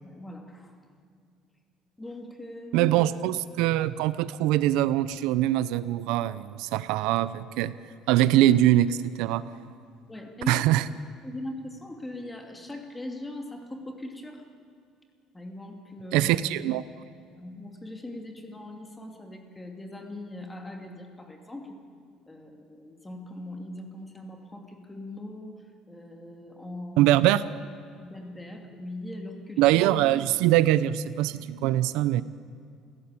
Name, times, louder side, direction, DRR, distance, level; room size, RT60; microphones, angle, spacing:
voice 1, 0.0-0.8 2.0-2.9 10.1-10.6 11.2-14.4 15.3-16.3 17.4-21.8 22.3-25.6 25.9-27.1 28.0-29.6, left 1 dB, 10° left, 3 dB, 2.7 m, -40 dB
voice 2, 2.7-7.7 8.1-9.5 10.5-10.8 16.1-16.8 27.0-27.4 29.6-32.2, right 14 dB, 85° right, 15 dB, 0.7 m, -23 dB
29.0 x 16.5 x 8.7 m, 2.3 s
cardioid pair, 160°, 0 cm